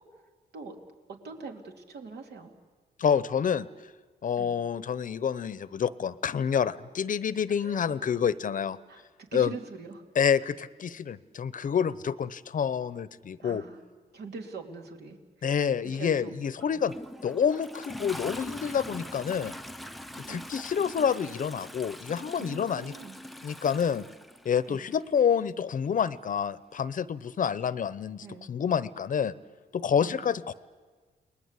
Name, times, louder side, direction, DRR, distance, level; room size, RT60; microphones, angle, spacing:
voice 1, 1.1-2.5 4.4-4.5 7.6-7.8 8.9-10.0 13.4-13.8 14.1-15.5 15.8-16.8 20.3-20.4 22.4-23.2 24.7-24.8 28.2-28.5 30.0-30.2, right 4 dB, 70° right, 3 dB, 3.0 m, -43 dB
voice 2, 3.0-3.7 4.2-8.8 9.3-9.6 10.1-13.6 15.4-16.9 17.2-19.5 20.3-22.9 23.4-24.1 24.4-29.3 29.7-30.5, left 7 dB, 50° left, 16 dB, 0.8 m, -28 dB
Toilet flush, 16.6-25.0 26.1-26.2, equal, ahead, 0.7 m, -43 dB
29.5 x 20.5 x 8.3 m, 1.4 s
cardioid pair, 100°, 17 cm